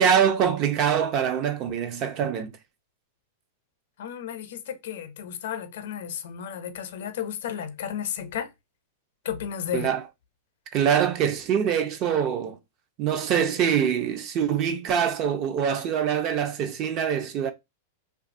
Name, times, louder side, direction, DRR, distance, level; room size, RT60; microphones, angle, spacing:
voice 1, 0.0-2.6 9.7-10.0 10.7-12.6 13.0-17.5, right 8 dB, 40° right, 0.4 m, -24 dB
voice 2, 4.0-8.5 9.2-9.9, left 9 dB, 70° left, 0.5 m, -33 dB
2.6 x 2.4 x 2.5 m
hypercardioid pair, 125°, 0 cm